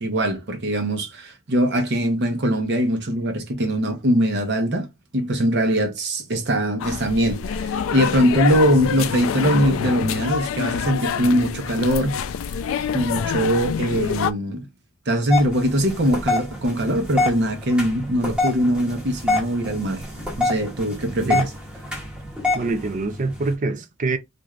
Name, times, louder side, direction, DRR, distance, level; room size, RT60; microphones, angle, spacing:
voice 1, 0.0-4.9 5.1-12.2 12.9-14.7 15.1-20.0 20.4-21.5, equal, 55° right, 0.8 m, -22 dB
sound 1, 6.8-14.3, left 7 dB, 75° left, 0.3 m, -26 dB
sound 2, 15.3-23.5, left 2 dB, 5° right, 0.9 m, -27 dB
voice 2, 22.5-24.2, right 3 dB, 40° right, 0.4 m, -25 dB
3.2 x 2.6 x 2.4 m
head